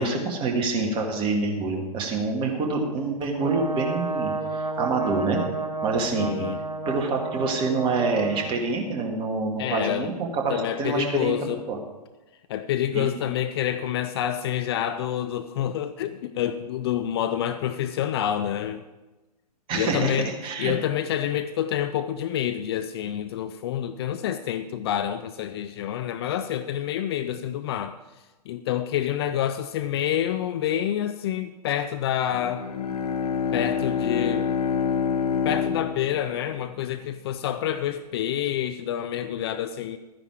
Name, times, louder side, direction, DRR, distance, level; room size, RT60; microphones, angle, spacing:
voice 1, 0.0-5.4 5.8-6.5 6.9-11.8 12.9-13.1 19.7-20.2 20.4-20.7, right 3 dB, 25° right, 2 dB, 1.9 m, -26 dB
Brass instrument, 3.4-8.6, right 3 dB, 75° right, 1.9 m, -31 dB
voice 2, 6.1-6.6 9.6-10.1 10.5-11.6 12.5-18.8 19.7-20.3 20.6-28.0 28.5-32.7 33.5-34.5 35.4-40.0, left 10 dB, 40° left, 11 dB, 0.5 m, -28 dB
Bowed string instrument, 32.3-37.1, left 6 dB, 65° left, 0.9 m, -27 dB
12.5 x 10.0 x 4.7 m, 1.1 s
figure-of-eight pair, 115°, 21 cm